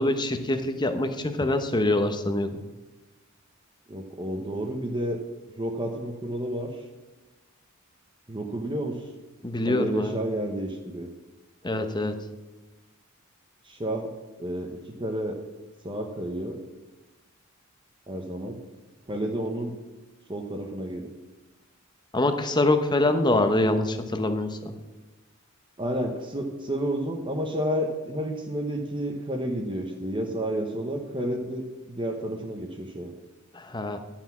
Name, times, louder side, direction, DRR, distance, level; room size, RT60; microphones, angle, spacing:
voice 1, 0.0-2.5 9.4-10.2 11.6-12.2 22.1-24.7 33.5-34.0, left 2 dB, 20° left, 8 dB, 0.9 m, -25 dB
voice 2, 3.9-5.2 5.6-6.7 8.3-9.0 9.7-11.1 13.6-14.1 14.4-14.7 15.0-15.4 15.8-16.6 18.1-18.6 19.1-19.7 20.3-21.1 25.8-33.1, right 1 dB, 25° right, 1 dB, 0.9 m, -30 dB
11.5 x 5.9 x 7.3 m, 1.1 s
head